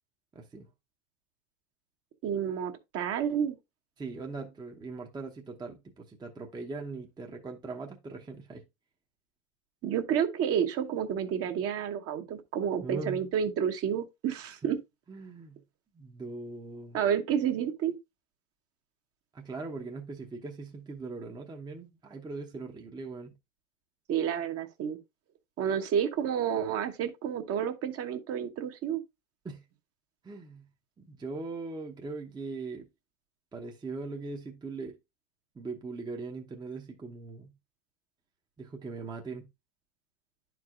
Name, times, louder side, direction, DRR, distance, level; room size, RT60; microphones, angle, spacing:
voice 1, 0.3-0.7 4.0-8.6 12.8-13.2 15.1-15.6 15.9-17.0 19.3-23.3 29.4-29.6 30.2-30.7 31.0-32.9 33.5-35.0 35.5-37.5 38.6-39.5, right 3 dB, 10° right, 0.8 m, -40 dB
voice 2, 2.2-3.6 9.8-14.8 16.9-18.0 24.1-25.0 25.6-29.0, right 8 dB, 35° right, 1.0 m, -30 dB
10.5 x 4.7 x 2.4 m
hypercardioid pair, 100°, 40 cm